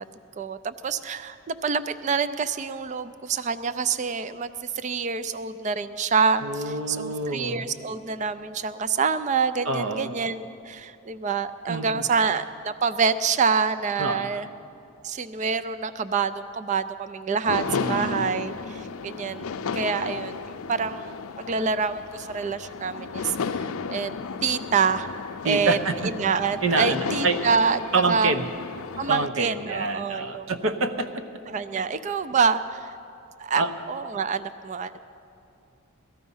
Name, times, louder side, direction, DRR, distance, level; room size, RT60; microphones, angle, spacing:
voice 1, 0.4-14.5 15.0-24.2 24.4-25.1 25.4-27.8 28.1-28.3 29.0-30.5 31.5-33.0 33.4-35.0, right 5 dB, 35° right, 12 dB, 0.3 m, -27 dB
voice 2, 6.4-7.6 9.7-10.1 11.7-12.0 14.0-14.4 17.7-18.2 25.4-26.1 26.6-27.5 27.9-28.5 29.1-31.2 33.5-33.7, right 3 dB, 70° right, 8 dB, 0.8 m, -27 dB
sound 1, 17.4-29.3, left 5 dB, 80° left, 0.5 m, -33 dB
18.0 x 13.5 x 5.5 m, 2.7 s
head